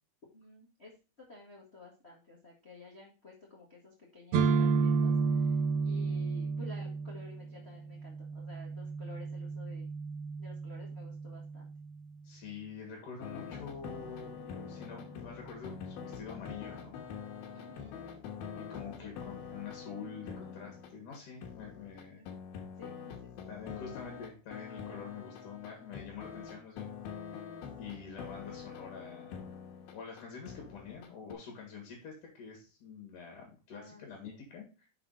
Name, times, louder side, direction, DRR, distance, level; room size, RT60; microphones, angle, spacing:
voice 1, 0.3-9.9 10.4-11.7 17.5-18.0 19.0-19.1 22.1-22.3 22.8-24.1 33.7-34.4, left 3 dB, 35° left, -3 dB, 0.9 m, -53 dB
sound 1, 4.3-12.1, right 5 dB, 75° right, 2.5 m, -32 dB
voice 2, 12.2-17.1 18.7-22.2 23.5-26.9 27.8-29.6 29.9-34.9, left 5 dB, 60° left, 0 dB, 3.3 m, -46 dB
sound 2, 13.2-31.3, left 7 dB, 80° left, 3.1 m, -45 dB
7.1 x 5.9 x 4.0 m, 0.32 s
omnidirectional pair, 4.4 m